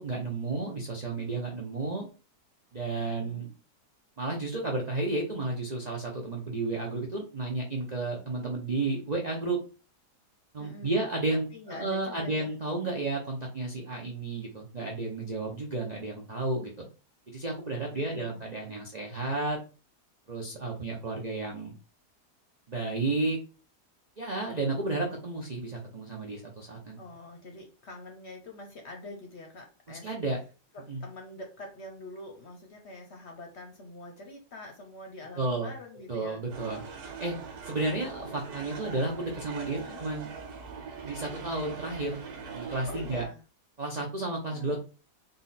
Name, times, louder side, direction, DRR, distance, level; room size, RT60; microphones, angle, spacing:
voice 1, 0.0-2.1 2.7-3.5 4.2-9.6 10.5-16.9 17.3-19.6 20.3-21.7 22.7-23.4 24.2-27.0 29.9-30.4 30.9-31.0 35.4-35.7 36.1-37.4 37.7-40.3 41.0-42.2 42.5-43.3 43.8-44.8, right 2 dB, 45° right, -1 dB, 0.5 m, -32 dB
voice 2, 3.0-3.5 10.6-11.0 11.5-12.5 17.9-18.4 27.0-30.1 30.7-36.4 39.8-40.0 42.9-43.4 44.5-44.8, left 2 dB, 50° left, 3 dB, 0.9 m, -45 dB
sound 1, 36.5-43.3, right 5 dB, 70° right, 1.5 m, -42 dB
3.9 x 2.4 x 4.0 m, 0.34 s
omnidirectional pair, 1.7 m